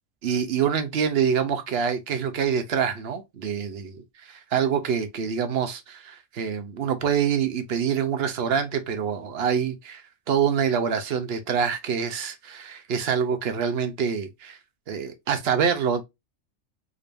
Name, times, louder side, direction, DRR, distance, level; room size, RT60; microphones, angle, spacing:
voice 1, 0.2-10.0 10.3-14.6 14.9-16.0, right 7 dB, 55° right, 0.8 m, -26 dB
3.8 x 3.3 x 2.5 m
omnidirectional pair, 1.4 m